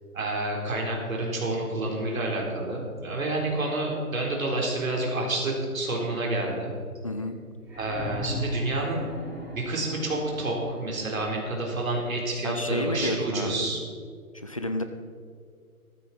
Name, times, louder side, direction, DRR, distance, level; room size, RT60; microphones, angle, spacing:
voice 1, 0.1-6.7 7.8-9.1 9.5-13.8, right 2 dB, 65° right, -1 dB, 4.0 m, -29 dB
voice 2, 7.0-7.4 12.4-13.7 14.3-14.8, left 1 dB, 25° left, 7 dB, 0.5 m, -30 dB
sound 1, 7.6-11.4 12.6-12.7, equal, 5° right, 4.0 m, -38 dB
14.5 x 12.5 x 4.3 m, 2.1 s
figure-of-eight pair, 150°, 45 cm